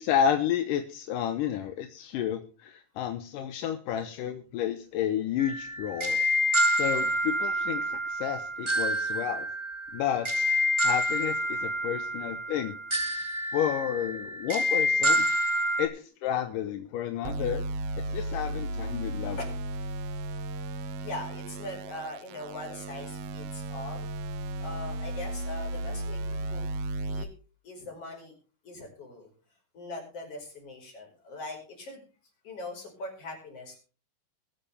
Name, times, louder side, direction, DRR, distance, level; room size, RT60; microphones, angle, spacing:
voice 1, 0.0-6.2 6.8-9.5 9.9-10.5 10.8-12.7 13.5-15.3 15.5-17.6 18.1-19.4, left 9 dB, 80° left, 7 dB, 2.5 m, -31 dB
sound 1, 5.4-15.9, equal, 15° right, 0.9 m, -28 dB
sound 2, 17.2-27.2, right 1 dB, 90° right, 1.3 m, -35 dB
voice 2, 21.0-24.1 24.6-26.6 27.1-27.3 27.6-28.3 28.6-29.3 29.7-32.0 32.4-33.8, left 2 dB, 45° left, 1 dB, 6.0 m, -41 dB
22.0 x 8.8 x 3.5 m, 0.37 s
omnidirectional pair, 3.8 m